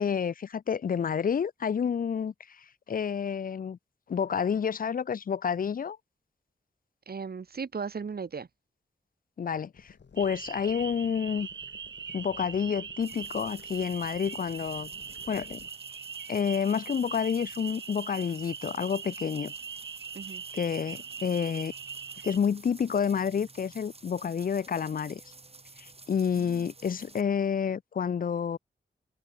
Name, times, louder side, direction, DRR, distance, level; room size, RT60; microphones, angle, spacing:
voice 1, 0.0-2.3 2.9-3.8 4.1-6.0 9.4-11.5 12.1-14.9 15.3-15.6 16.3-19.5 20.5-21.7 22.2-25.2 25.8-28.6, left 7 dB, 50° left, 0.5 m, -29 dB
voice 2, 7.1-8.5 20.1-20.4 26.3-26.7, right 5 dB, 55° right, 1.8 m, -37 dB
sound 1, 9.7-15.7, left 6 dB, 70° left, 6.1 m, -55 dB
sound 2, 10.2-22.4, right 6 dB, 80° right, 3.7 m, -41 dB
sound 3, 13.0-27.2, right 3 dB, 30° right, 5.8 m, -52 dB
wide cardioid pair, 105°, 19 cm